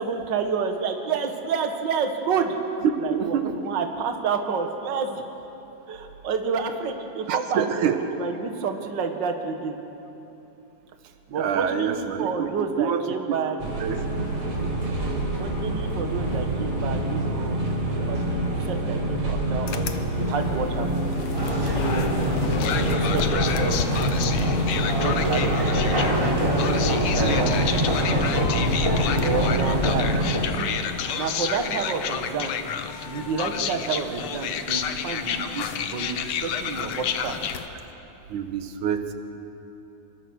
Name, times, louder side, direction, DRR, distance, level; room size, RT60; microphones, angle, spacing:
voice 1, 0.0-2.5 3.0-5.3 5.9-9.8 11.3-13.6 15.4-21.0 21.6-24.4 24.6-25.4 25.7-26.4 27.1-27.7 28.0-28.4 29.2-30.1 30.6-30.8 31.1-32.7 33.0-37.4, right 5 dB, 45° right, 5 dB, 1.9 m, -30 dB
voice 2, 2.9-3.5 7.3-8.0 11.3-12.5 12.8-13.0 13.8-14.0 25.1-25.7 26.6-26.9 30.1-30.2 38.3-39.1, right 8 dB, 85° right, 8 dB, 2.7 m, -27 dB
sound 1, 13.6-30.4, right 1 dB, 65° right, 5.4 m, -26 dB
sound 2, 19.7-37.7, left 7 dB, 65° left, 1.5 m, -30 dB
sound 3, 21.3-30.5, equal, 10° right, 3.3 m, -26 dB
26.5 x 22.5 x 6.5 m, 3.0 s
omnidirectional pair, 3.4 m